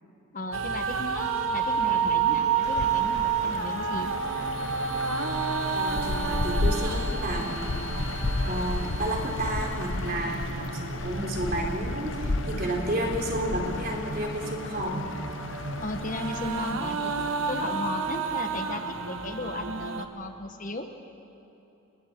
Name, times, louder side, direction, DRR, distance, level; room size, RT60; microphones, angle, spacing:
voice 1, 0.3-4.1 15.8-17.1 17.5-20.9, left 2 dB, 40° left, 6 dB, 1.1 m, -35 dB
sound 1, 0.5-20.1, right 5 dB, 80° right, 1.2 m, -31 dB
sound 2, 2.6-16.7, left 2 dB, 60° left, 0.8 m, -33 dB
sound 3, 4.6-10.2, left 8 dB, 80° left, 3.2 m, -46 dB
voice 2, 5.7-7.8 8.4-15.0, right 1 dB, 45° right, 0 dB, 3.4 m, -31 dB
29.5 x 20.0 x 4.4 m, 2.8 s
head